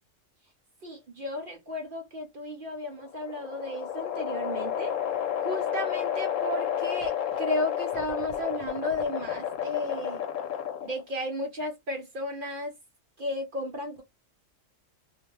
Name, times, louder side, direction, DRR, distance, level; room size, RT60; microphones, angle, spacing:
voice 1, 0.8-5.0 5.4-10.2 10.8-12.8 13.2-14.0, left 1 dB, 60° right, 0.6 m, -34 dB
sound 1, 2.8-11.1, left 9 dB, 85° left, 1.0 m, -31 dB
2.3 x 2.1 x 3.0 m
omnidirectional pair, 1.3 m